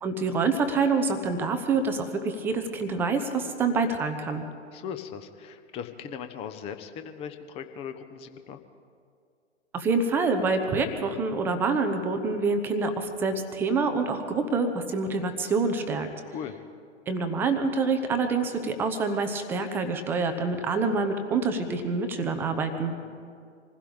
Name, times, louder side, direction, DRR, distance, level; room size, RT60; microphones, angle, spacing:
voice 1, 0.0-4.5 9.7-16.1 17.1-22.9, right 4 dB, 5° right, 7 dB, 0.5 m, -26 dB
voice 2, 4.7-8.6 16.2-16.5 23.0-23.2, left 7 dB, 15° left, 9 dB, 0.8 m, -39 dB
26.0 x 16.0 x 3.5 m, 2.2 s
figure-of-eight pair, 115°, 37 cm